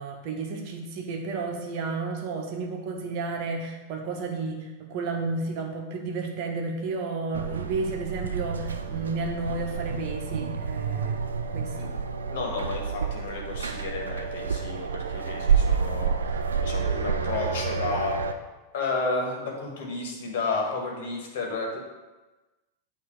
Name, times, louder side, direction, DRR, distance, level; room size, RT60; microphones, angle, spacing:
voice 1, 0.0-11.2 11.5-11.9, right 3 dB, 45° right, 2 dB, 1.1 m, -32 dB
sound 1, 7.3-18.3, right 6 dB, 70° right, 0.4 m, -29 dB
voice 2, 12.3-18.2 18.7-21.8, left 3 dB, 55° left, 0 dB, 1.5 m, -32 dB
8.5 x 2.9 x 5.2 m, 1.2 s
figure-of-eight pair, 90°, 0 cm